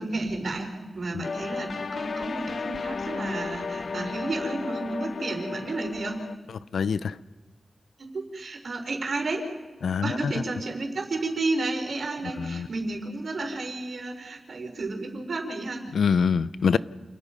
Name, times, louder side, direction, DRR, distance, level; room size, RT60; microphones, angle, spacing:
voice 1, 0.0-6.2 8.0-9.4 10.0-15.8, right 2 dB, 65° right, 4.9 m, -32 dB
sound 1, 1.2-6.4, left 4 dB, 65° left, 0.9 m, -34 dB
voice 2, 6.7-7.2 9.8-10.4 12.4-12.7 15.9-16.8, left 6 dB, 90° left, 0.6 m, -25 dB
29.0 x 20.0 x 5.4 m
cardioid pair, 70°, 0 cm